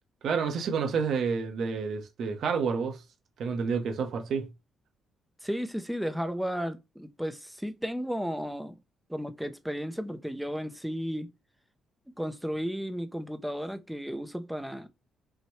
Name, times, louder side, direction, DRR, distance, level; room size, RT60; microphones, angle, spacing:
voice 1, 0.2-3.0 3.4-4.5, right 5 dB, 65° right, 0.9 m, -29 dB
voice 2, 5.4-8.8 9.1-11.3 12.2-14.9, equal, ahead, 0.5 m, -34 dB
5.6 x 2.2 x 3.1 m
cardioid pair, 125°, 0 cm